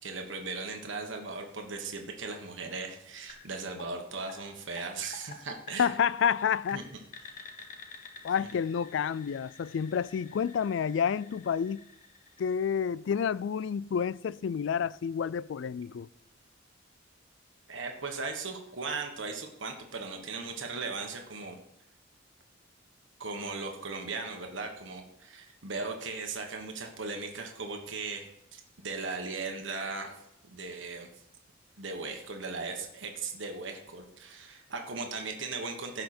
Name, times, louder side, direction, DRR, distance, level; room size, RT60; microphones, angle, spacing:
voice 1, 0.0-5.9 6.7-6.8 8.4-8.5 17.7-21.6 23.2-30.2 30.5-31.1 31.8-36.0, right 4 dB, 70° right, 1.4 m, -38 dB
sound 1, 3.3-13.1, left 4 dB, 40° left, 1.2 m, -51 dB
voice 2, 5.8-6.8 8.2-11.8 12.4-16.1, left 7 dB, 65° left, 0.3 m, -29 dB
15.5 x 5.7 x 4.3 m
head